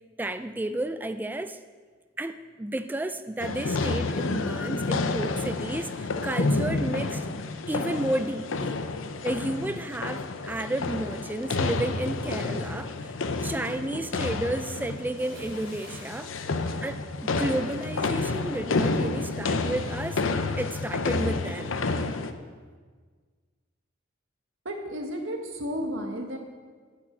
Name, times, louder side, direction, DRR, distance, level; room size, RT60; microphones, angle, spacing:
voice 1, 0.2-1.6 2.2-7.3 7.7-8.8 9.2-13.1 13.4-16.3 16.8-20.2 20.6-21.8, right 1 dB, 10° right, 10 dB, 0.3 m, -32 dB
sound 1, 3.4-22.3, left 3 dB, 85° left, 0.7 m, -30 dB
Bathtub (filling or washing) / Splash splatter, 15.1-17.6 17.9-18.2, right 2 dB, 75° right, 4.2 m, -51 dB
voice 2, 24.7-26.4, equal, 90° right, 3 dB, 1.8 m, -32 dB
9.2 x 7.3 x 8.6 m, 1.6 s
head